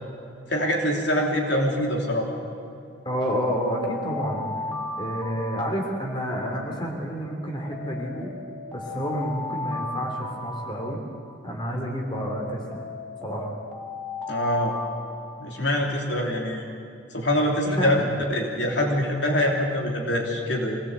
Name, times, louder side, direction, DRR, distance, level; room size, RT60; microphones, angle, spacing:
voice 1, 0.5-2.3 14.3-14.7 15.4-16.7 17.1-18.0 18.3-20.8, left 1 dB, 70° left, 0 dB, 3.2 m, -24 dB
voice 2, 3.0-4.4 5.0-8.3 8.7-11.0 11.4-12.8 13.2-13.5 17.6-18.1, equal, 25° left, 0 dB, 3.2 m, -29 dB
Alarm, 3.2-6.5 7.7-11.5 12.7-16.0, left 3 dB, 5° left, 1.9 m, -36 dB
24.0 x 18.5 x 8.2 m, 2.4 s
head